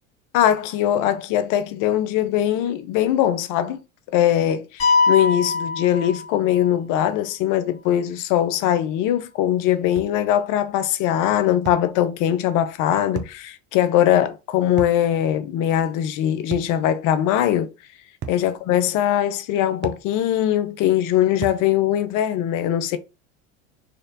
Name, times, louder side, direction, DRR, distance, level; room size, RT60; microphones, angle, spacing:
voice 1, 0.3-3.8 4.1-17.7 18.3-23.0, left 11 dB, 55° left, 0.7 m, -21 dB
sound 1, 4.8-6.7, left 4 dB, 35° left, 2.0 m, -22 dB
sound 2, 10.0-10.2 11.6-11.9 13.1-13.4 14.8-15.0 16.5-16.8 18.2-18.5 19.8-20.1 21.4-21.7, right 7 dB, 30° right, 0.5 m, -33 dB
4.3 x 3.2 x 2.6 m
hypercardioid pair, 95°, 39 cm